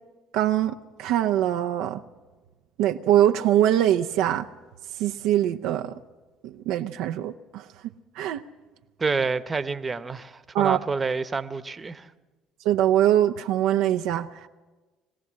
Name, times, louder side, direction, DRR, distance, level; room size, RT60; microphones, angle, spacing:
voice 1, 0.3-2.0 2.8-4.4 5.0-5.9 6.4-7.6 8.2-8.4 10.5-10.8 12.6-14.3, right 12 dB, 70° right, 0.6 m, -23 dB
voice 2, 9.0-12.1, right 4 dB, 25° right, 1.0 m, -28 dB
22.0 x 16.0 x 7.6 m
hypercardioid pair, 65°, 0 cm